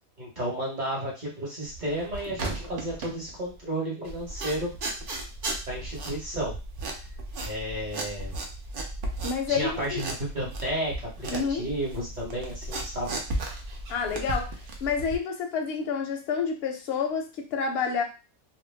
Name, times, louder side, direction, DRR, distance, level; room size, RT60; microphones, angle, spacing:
voice 1, 0.2-4.7 5.7-6.5 7.4-8.3 9.5-13.2, right 1 dB, 35° right, -4 dB, 1.0 m, -32 dB
sound 1, 1.7-3.6 4.1-15.2, right 2 dB, 60° right, 0.5 m, -36 dB
voice 2, 9.2-10.0 11.3-11.7 13.9-18.0, left 5 dB, 60° left, 4 dB, 0.7 m, -29 dB
2.5 x 2.1 x 3.2 m, 0.31 s
omnidirectional pair, 1.5 m